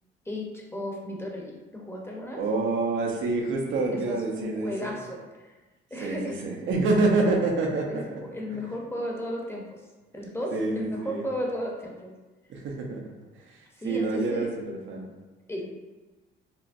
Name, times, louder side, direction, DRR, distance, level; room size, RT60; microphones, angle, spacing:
voice 1, 0.2-2.4 3.9-5.6 5.9-6.4 7.9-9.9 10.1-12.1 13.7-14.5 15.5-15.7, equal, 10° left, -2 dB, 0.7 m, -35 dB
voice 2, 2.4-4.9 6.0-8.2 8.5-8.6 10.5-11.2 12.5-13.1 13.8-15.1, right 3 dB, 75° right, 0 dB, 0.7 m, -27 dB
4.3 x 2.1 x 2.5 m, 1.2 s
cardioid pair, 90°, 20 cm